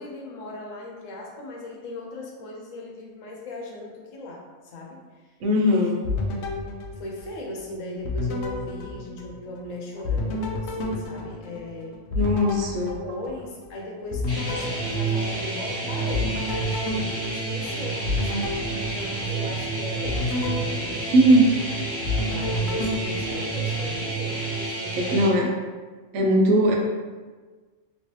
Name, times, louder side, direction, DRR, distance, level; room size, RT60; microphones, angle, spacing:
voice 1, 0.0-4.5 4.7-5.4 5.6-5.9 6.9-12.0 12.6-12.7 13.0-18.6 18.9-21.1 22.2-24.5 24.8-25.4, left 2 dB, 85° left, -1 dB, 1.1 m, -38 dB
voice 2, 5.4-6.0 12.2-12.9 21.1-21.5 25.0-25.5 26.1-26.8, equal, 75° right, 1 dB, 0.9 m, -19 dB
sound 1, 6.0-7.7 8.0-9.7 10.0-13.7 14.1-15.7 16.1-19.6 20.0-21.7 22.0-24.0, left 2 dB, 65° left, 0.8 m, -30 dB
sound 2, 14.3-25.3, right 3 dB, 10° left, 0.9 m, -29 dB
3.0 x 2.9 x 3.1 m, 1.4 s
omnidirectional pair, 1.3 m